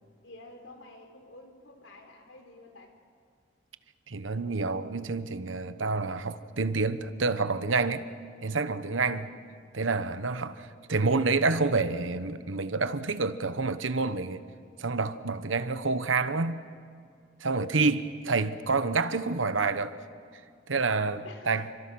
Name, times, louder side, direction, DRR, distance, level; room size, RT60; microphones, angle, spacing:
voice 1, 0.2-3.0 9.0-9.3 21.2-21.6, left 2 dB, 80° left, 3.8 m, -50 dB
voice 2, 4.1-8.0 8.4-9.3 9.7-14.4 14.8-16.6 17.4-20.0 20.7-21.6, right 3 dB, 85° right, 1.1 m, -28 dB
29.0 x 25.0 x 6.2 m
head